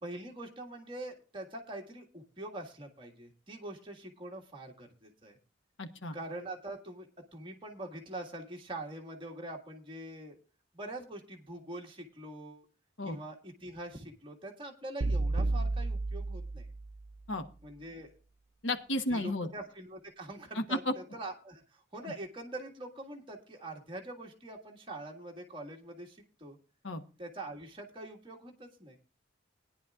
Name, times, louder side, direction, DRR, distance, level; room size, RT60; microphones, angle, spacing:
voice 1, 0.0-5.4 6.1-10.4 10.7-12.6 13.0-16.7 17.6-18.2 19.1-26.6 27.2-29.0, right 1 dB, 25° right, 1 dB, 1.7 m, -44 dB
voice 2, 5.8-6.1 13.0-13.2 17.3-17.5 18.6-19.5 20.5-20.9 26.8-27.0, left 1 dB, 70° left, 8 dB, 1.1 m, -32 dB
sound 1, 15.0-17.1, right 2 dB, 90° right, 0.6 m, -32 dB
19.0 x 10.0 x 2.4 m, 0.34 s
head